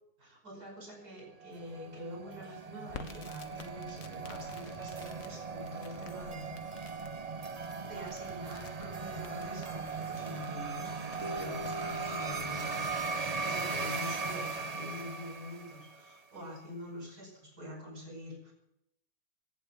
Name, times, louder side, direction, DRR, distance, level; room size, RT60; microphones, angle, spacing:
voice 1, 0.2-6.7 7.8-18.5, equal, 80° right, 1 dB, 6.0 m, -46 dB
sound 1, 1.4-16.1, right 4 dB, 30° right, 0.8 m, -38 dB
Crackle, 2.9-12.3, left 6 dB, 60° left, 1.6 m, -52 dB
sound 2, 11.2-15.0, left 3 dB, 55° right, 1.8 m, -47 dB
16.5 x 11.5 x 6.7 m, 0.79 s
omnidirectional pair, 1.7 m